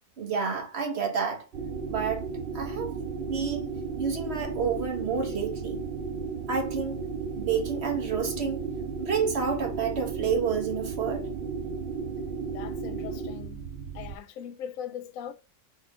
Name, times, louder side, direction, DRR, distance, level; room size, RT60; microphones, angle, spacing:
voice 1, 0.2-1.4 1.9-2.2 2.5-3.7 4.0-5.8 6.5-7.0 7.4-8.6 9.0-11.3, right 6 dB, 45° right, 1.3 m, -29 dB
sound 1, 1.5-14.2, right 5 dB, 90° right, 0.4 m, -34 dB
voice 2, 12.5-13.6 13.9-15.3, left 9 dB, 70° left, 0.9 m, -40 dB
4.2 x 2.4 x 4.8 m
omnidirectional pair, 1.6 m